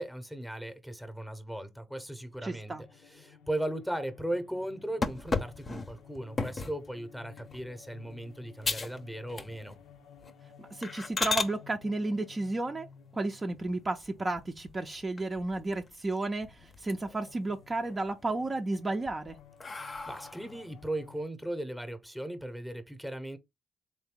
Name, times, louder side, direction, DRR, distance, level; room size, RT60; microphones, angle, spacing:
voice 1, 0.0-2.7 3.0-9.7 19.7-23.4, right 1 dB, ahead, 0.8 m, -37 dB
sound 1, 1.8-21.2, left 7 dB, 90° left, 0.6 m, -56 dB
voice 2, 2.4-2.8 10.6-12.9 13.1-19.4, right 2 dB, 25° right, 0.5 m, -33 dB
sound 2, 5.0-6.8 7.4-7.7 8.1-8.2 8.6-9.0 9.3-9.8 10.2-10.3 10.8-11.5 13.5-14.2 14.7-14.8 15.2-15.3 15.6-16.4 16.7-17.3 17.7-18.3 18.9-20.6, left 4 dB, 35° left, 0.6 m, -34 dB
3.6 x 2.7 x 3.6 m
cardioid pair, 90°, 0 cm